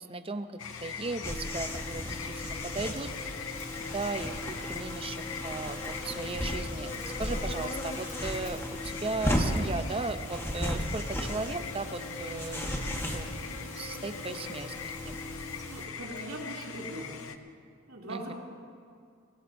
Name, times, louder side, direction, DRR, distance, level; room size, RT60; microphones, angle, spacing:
voice 1, 0.1-0.5 0.8-3.1 3.8-14.7 15.0-15.2 18.1-18.3, right 3 dB, 25° right, 8 dB, 0.7 m, -37 dB
sound 1, 0.6-17.4, left 7 dB, 80° left, 0.7 m, -42 dB
Buzz, 0.6-17.3, left 2 dB, 35° left, 1.5 m, -46 dB
sound 2, 1.2-15.9, equal, 10° left, 1.4 m, -36 dB
voice 2, 15.7-17.3 17.9-18.3, right 1 dB, 85° right, -3 dB, 3.1 m, -40 dB
23.5 x 18.0 x 2.7 m, 2.3 s
head